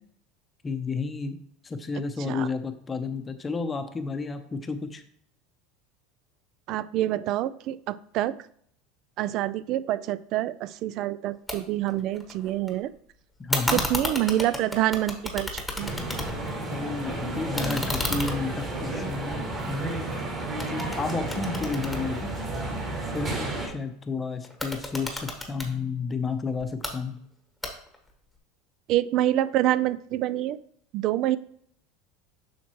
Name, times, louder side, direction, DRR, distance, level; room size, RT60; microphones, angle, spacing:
voice 1, 0.6-1.4 1.6-5.0 13.4-13.8 16.7-20.3 20.7-22.3 23.1-27.2, left 4 dB, 20° left, 8 dB, 0.7 m, -31 dB
voice 2, 6.7-8.4 9.2-12.9 13.7-15.9 28.9-30.6 30.9-31.4, right 13 dB, 50° right, 17 dB, 0.3 m, -26 dB
sound 1, 11.5-11.6 11.9-12.7 13.5-16.6 16.9-20.2 20.6-22.8 24.4-25.7 26.6-26.9 27.6-28.1, left 1 dB, 5° left, 1.2 m, -33 dB
sound 2, 15.8-23.7, right 2 dB, 30° right, 2.6 m, -32 dB
7.2 x 5.8 x 3.0 m, 0.66 s
supercardioid pair, 130°, 0 cm